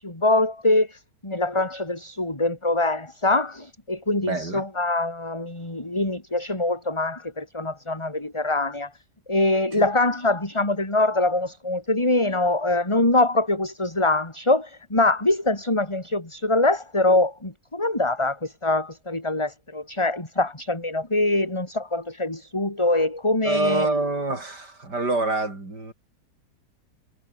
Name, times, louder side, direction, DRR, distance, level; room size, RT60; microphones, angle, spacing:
voice 1, 0.0-8.9 9.3-23.9, left 2 dB, 15° left, 3.3 m, -24 dB
voice 2, 4.2-4.7 9.7-9.9 23.4-25.9, right 2 dB, 85° right, 6.5 m, -26 dB
omnidirectional pair, 1.8 m